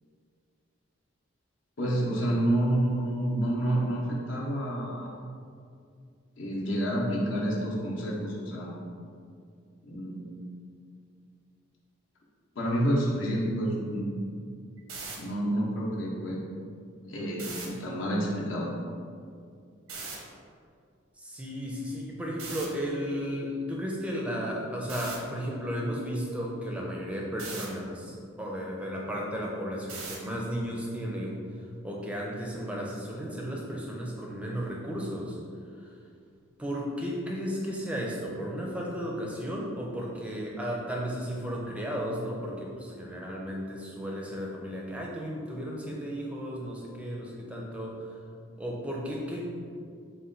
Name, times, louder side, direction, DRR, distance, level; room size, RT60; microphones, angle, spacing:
voice 1, 1.8-5.1 6.4-8.7 9.8-10.4 12.5-14.1 15.2-16.4 17.0-18.7, right 1 dB, 65° left, -5 dB, 0.7 m, -29 dB
sound 1, 14.8-15.2 17.3-17.7 19.9-20.2 22.4-22.7 24.9-25.2 27.4-27.7 29.9-30.3, right 4 dB, 85° right, 0.7 m, -38 dB
voice 2, 21.2-31.4 31.8-35.4 35.7-35.9 36.6-48.1 48.5-49.5, equal, 5° right, -2 dB, 0.4 m, -34 dB
4.2 x 2.2 x 3.8 m, 2.3 s
head